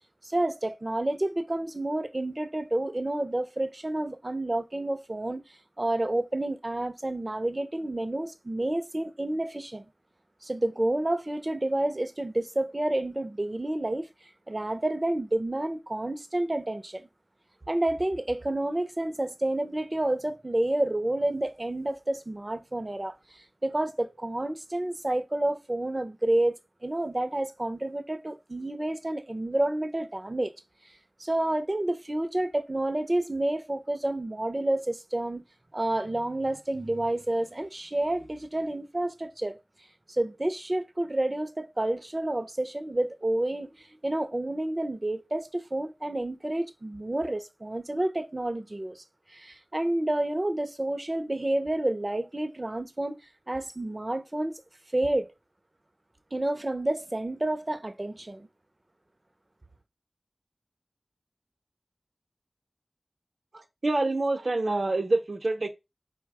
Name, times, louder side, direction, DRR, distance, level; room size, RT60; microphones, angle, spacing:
voice 1, 0.2-5.4 5.8-9.9 10.4-14.1 14.5-17.1 17.7-23.1 23.6-26.5 26.8-30.5 31.2-35.4 35.7-39.6 40.1-49.0 49.3-53.2 53.5-54.5 54.9-55.3 56.3-58.5, right 1 dB, 35° right, 0.6 m, -29 dB
voice 2, 63.5-65.7, right 2 dB, 70° right, 0.8 m, -27 dB
5.0 x 2.2 x 4.7 m
wide cardioid pair, 60°, 0 cm